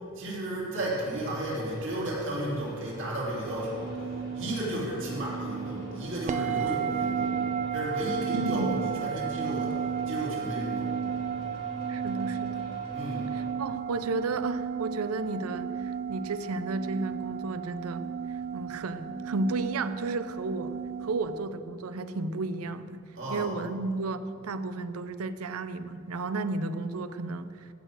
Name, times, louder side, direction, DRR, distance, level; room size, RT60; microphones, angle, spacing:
voice 1, 0.2-3.9 4.3-7.3 7.7-9.8 10.0-10.9 12.9-13.3 23.2-23.7, right 1 dB, 60° right, -5 dB, 3.5 m, -33 dB
sound 1, 0.7-13.5, right 1 dB, 85° left, 3.3 m, -44 dB
sound 2, 3.5-21.5, right 7 dB, 35° right, 0.3 m, -34 dB
voice 2, 8.3-8.8 11.9-12.7 13.3-23.0 23.3-27.7, right 3 dB, 85° right, 12 dB, 0.6 m, -33 dB
15.5 x 6.6 x 6.3 m, 2.4 s
head